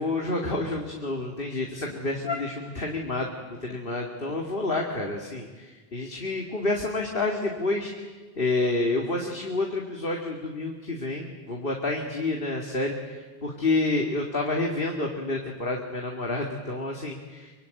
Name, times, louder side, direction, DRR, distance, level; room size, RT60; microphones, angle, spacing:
voice 1, 0.0-7.9 8.4-17.5, left 2 dB, 60° left, 1 dB, 2.5 m, -29 dB
25.0 x 24.0 x 9.5 m, 1.4 s
omnidirectional pair, 1.0 m